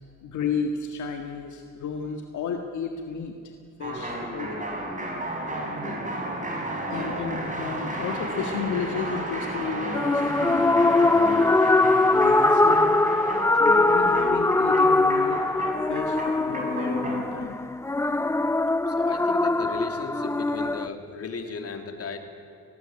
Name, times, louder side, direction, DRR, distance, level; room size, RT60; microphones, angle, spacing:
voice 1, 0.2-3.5 3.8-4.7 6.9-11.7 12.0-15.4 15.9-17.6, left 6 dB, 75° left, 4 dB, 1.8 m, -33 dB
sound 1, 3.8-17.3, right 1 dB, 25° right, 5.7 m, -33 dB
voice 2, 5.8-6.2 18.9-22.2, left 4 dB, 50° left, 6 dB, 2.9 m, -36 dB
sound 2, 9.9-20.9, left 2 dB, 10° left, 0.5 m, -22 dB
19.0 x 18.5 x 8.9 m, 2.7 s
cardioid pair, 90°, 30 cm